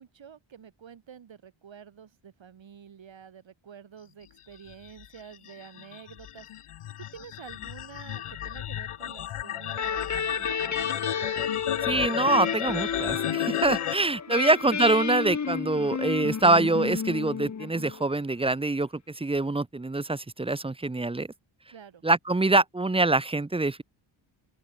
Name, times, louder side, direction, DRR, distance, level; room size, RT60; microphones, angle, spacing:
voice 1, 0.0-6.5 7.1-10.6 14.3-14.4 20.9-21.1 21.7-22.0, right 8 dB, 65° right, 6.7 m, -49 dB
sound 1, 4.7-13.9, left 11 dB, 85° left, 2.3 m, -33 dB
sound 2, 9.7-18.2, left 6 dB, 35° left, 1.4 m, -32 dB
voice 2, 11.8-21.3 22.0-23.8, right 2 dB, 10° right, 0.8 m, -25 dB
open air
cardioid pair, 90°, 50 cm